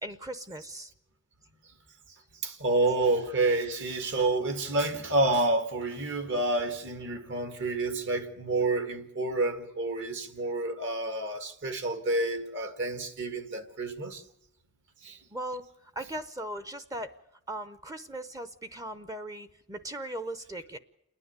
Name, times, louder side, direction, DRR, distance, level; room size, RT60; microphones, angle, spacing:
voice 1, 0.0-0.9 15.3-15.7 16.0-17.1 17.5-20.8, right 1 dB, 15° right, 0.7 m, -38 dB
voice 2, 2.4-14.2 15.0-15.2, right 2 dB, 55° right, 1.8 m, -29 dB
28.5 x 9.9 x 9.4 m
head